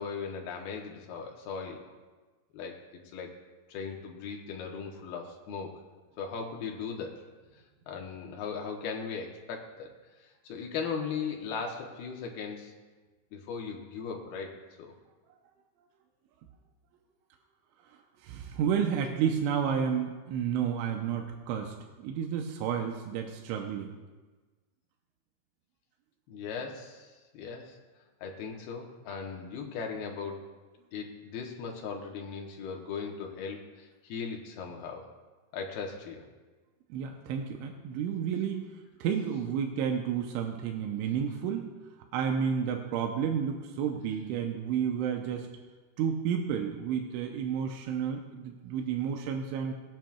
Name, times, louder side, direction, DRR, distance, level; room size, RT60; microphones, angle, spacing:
voice 1, 0.0-1.9 2.5-2.8 3.1-3.4 3.7-5.7 6.2-7.1 7.9-9.9 10.2-12.7 13.3-14.9 26.3-27.8 28.2-30.5 30.9-35.1 35.5-36.2, left 5 dB, 70° left, 1 dB, 2.6 m, -38 dB
voice 2, 17.9-23.9 36.9-38.7 39.0-41.7 42.1-45.5 46.0-49.7, right 7 dB, 90° right, 3 dB, 3.1 m, -31 dB
22.0 x 9.0 x 2.3 m, 1.3 s
omnidirectional pair, 5.5 m